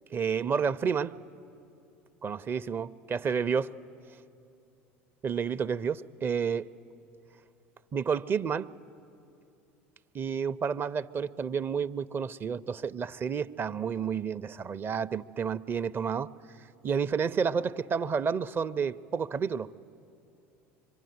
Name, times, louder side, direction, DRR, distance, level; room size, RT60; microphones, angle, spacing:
voice 1, 0.1-1.2 2.2-3.7 5.2-6.6 7.9-8.7 10.1-16.3 16.8-19.7, right 6 dB, 30° right, 0.6 m, -30 dB
25.5 x 23.5 x 9.5 m
hypercardioid pair, 75°, 7 cm